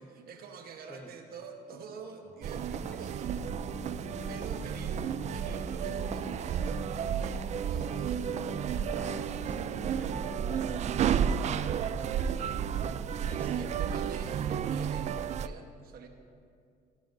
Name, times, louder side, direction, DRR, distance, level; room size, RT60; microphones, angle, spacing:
voice 1, 0.0-3.3 4.3-8.2 13.1-16.1, right 5 dB, 65° right, 4 dB, 1.2 m, -46 dB
Singing, 2.2-13.4, left 3 dB, 40° left, 1.5 m, -47 dB
sound 1, 2.4-15.5, right 8 dB, 45° right, 0.4 m, -32 dB
voice 2, 4.0-4.8 8.9-13.5, equal, 10° left, 4 dB, 1.0 m, -51 dB
17.0 x 11.5 x 2.7 m, 2.3 s
cardioid pair, 110°, 17 cm